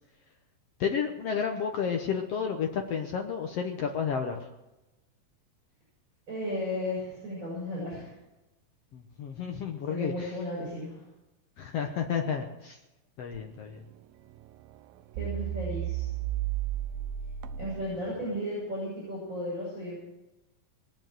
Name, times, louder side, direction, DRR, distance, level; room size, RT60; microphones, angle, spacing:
voice 1, 0.8-4.5 8.9-10.4 11.6-12.8 13.2-13.8, left 7 dB, 75° left, 3 dB, 1.4 m, -31 dB
voice 2, 6.3-8.1 9.9-11.0 15.2-16.1 17.6-19.9, left 1 dB, 20° right, -7 dB, 8.1 m, -34 dB
sound 1, 13.3-13.7 14.3-14.5 14.7-14.8 15.1-18.4, right 12 dB, 80° right, 2.4 m, -34 dB
21.5 x 7.2 x 7.8 m, 1.0 s
omnidirectional pair, 4.2 m